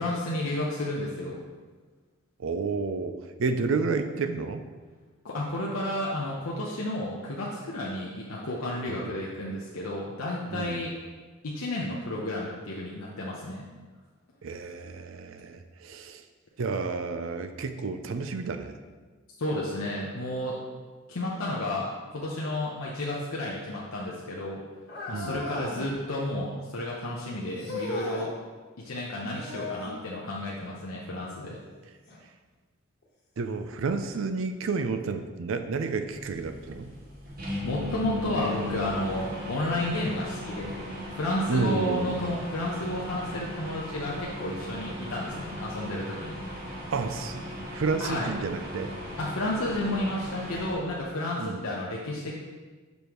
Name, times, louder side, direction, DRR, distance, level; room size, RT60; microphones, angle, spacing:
voice 1, 0.0-1.4 5.2-10.9 11.4-13.6 19.4-20.6 21.1-24.6 25.1-28.3 28.8-31.6 37.6-40.8 41.1-46.4 48.0-48.3 49.2-52.3, left 1 dB, 85° left, -4 dB, 0.8 m, -32 dB
voice 2, 2.4-4.6 8.9-9.1 10.5-10.8 14.4-16.2 16.6-18.7 25.1-25.4 31.8-31.9 33.4-36.9 41.5-42.3 46.9-48.9 51.4-51.7, right 4 dB, 65° right, 9 dB, 0.4 m, -31 dB
sound 1, 24.9-25.9 27.6-28.3 29.3-30.0 32.1-32.2 33.0-33.1 34.1-34.2, left 3 dB, 55° left, 1.3 m, -36 dB
sound 2, 36.1-50.7, left 1 dB, 45° right, 1.2 m, -37 dB
6.3 x 5.3 x 3.0 m, 1.4 s
head